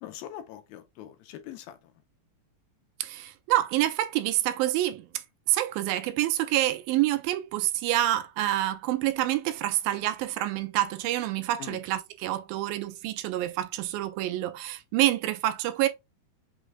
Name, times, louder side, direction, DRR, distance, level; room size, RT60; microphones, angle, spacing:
voice 1, 0.0-1.9 11.6-11.8, left 12 dB, 85° left, 2.4 m, -42 dB
voice 2, 3.0-5.1 5.5-15.9, right 14 dB, 80° right, 2.3 m, -27 dB
6.2 x 3.3 x 2.2 m
omnidirectional pair, 4.3 m